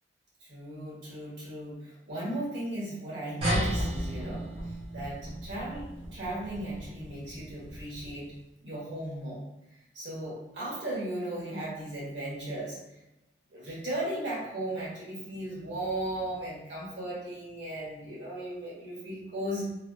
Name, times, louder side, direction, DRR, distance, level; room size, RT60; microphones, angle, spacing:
voice 1, 0.4-8.3 8.6-9.4 9.9-12.8 13.5-19.6, right 1 dB, 85° right, -6 dB, 1.3 m, -36 dB
sound 1, 3.4-8.3, equal, 30° right, 0.7 m, -34 dB
3.2 x 2.3 x 2.5 m, 0.92 s
head